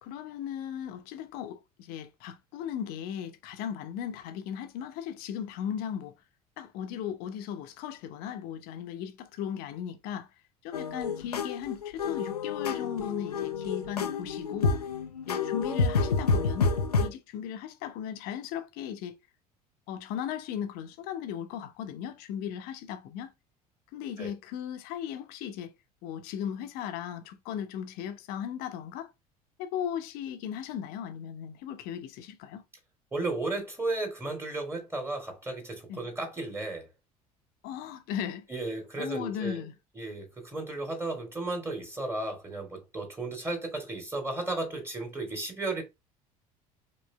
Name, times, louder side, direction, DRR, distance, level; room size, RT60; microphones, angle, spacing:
voice 1, 0.0-6.1 6.6-10.3 10.6-14.8 15.3-16.7 17.0-19.2 19.9-23.3 23.9-25.7 26.0-29.1 29.6-32.6 35.9-36.0 37.6-38.5 39.0-39.7, left 9 dB, 50° left, 0.8 m, -37 dB
sound 1, 10.7-17.1, left 4 dB, 85° left, 0.5 m, -29 dB
voice 2, 33.1-36.9 38.5-39.6 40.0-45.8, right 2 dB, 15° right, 2.0 m, -34 dB
5.2 x 3.2 x 2.2 m
figure-of-eight pair, 65°, 19 cm